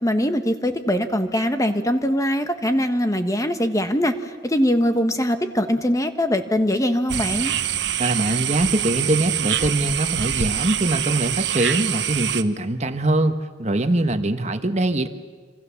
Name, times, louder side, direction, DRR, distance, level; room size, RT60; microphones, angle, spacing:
voice 1, 0.0-7.5, equal, 15° left, 8 dB, 1.4 m, -22 dB
sound 1, 7.1-12.4, right 10 dB, 65° right, 1.1 m, -25 dB
voice 2, 8.0-15.1, right 1 dB, 35° right, 8 dB, 1.4 m, -22 dB
27.0 x 26.5 x 7.2 m, 1.4 s
head